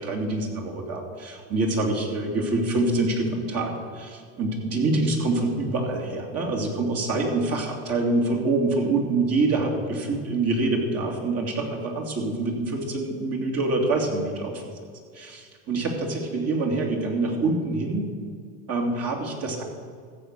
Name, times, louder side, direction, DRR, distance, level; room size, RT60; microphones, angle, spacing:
voice 1, 0.0-14.6 15.1-18.1 18.7-19.6, right 2 dB, 40° right, 1 dB, 2.7 m, -26 dB
14.5 x 7.4 x 6.7 m, 2.1 s
supercardioid pair, 110°, 36 cm